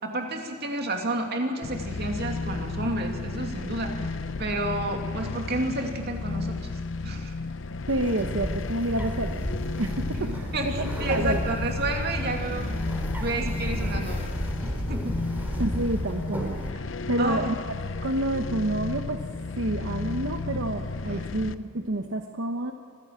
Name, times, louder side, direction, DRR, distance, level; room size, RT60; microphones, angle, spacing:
voice 1, 0.0-4.1 4.4-7.4 10.1-12.9 13.2-14.3 14.6-15.2 17.2-17.5 21.1-21.3, right 2 dB, 55° right, 2 dB, 2.7 m, -31 dB
sound 1, 1.6-21.5, left 3 dB, 75° left, 0.8 m, -33 dB
Bird, 7.9-16.7, equal, 10° right, 2.9 m, -33 dB
voice 2, 7.9-9.5 9.8-11.4 15.6-17.5 18.0-19.2 19.6-22.7, right 1 dB, 80° right, 4 dB, 1.1 m, -29 dB
25.5 x 15.5 x 7.6 m, 2.4 s
head